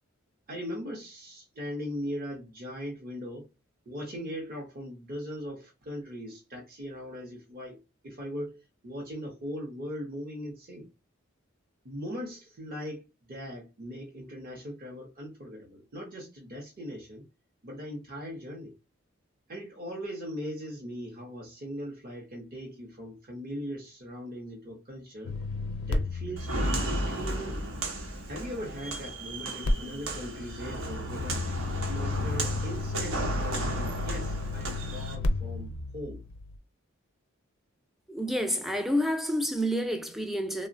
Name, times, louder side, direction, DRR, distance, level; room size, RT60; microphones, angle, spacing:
voice 1, 0.5-3.4 3.9-7.8 8.0-10.9 11.8-17.2 17.6-18.7 19.5-25.3 25.9-27.6 28.3-31.4 31.9-36.2, equal, 45° right, 0.7 m, -39 dB
sound 1, 25.2-28.4 29.6-36.6, left 2 dB, 85° left, 0.5 m, -34 dB
Walk footsteps, 26.4-35.1, right 1 dB, 85° right, 0.9 m, -34 dB
voice 2, 38.1-40.7, equal, ahead, 0.3 m, -29 dB
3.2 x 2.0 x 2.5 m
head